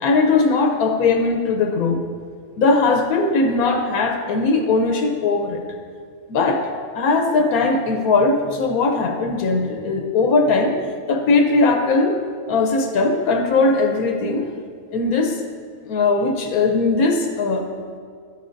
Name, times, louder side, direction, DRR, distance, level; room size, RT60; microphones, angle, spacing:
voice 1, 0.0-2.0 2.6-5.6 6.3-6.7 6.9-10.8 11.1-12.2 12.5-14.5 14.9-15.4 15.8-17.6, left 3 dB, 85° left, 4 dB, 1.2 m, -19 dB
11.5 x 8.8 x 2.6 m, 2.1 s
omnidirectional pair, 1.5 m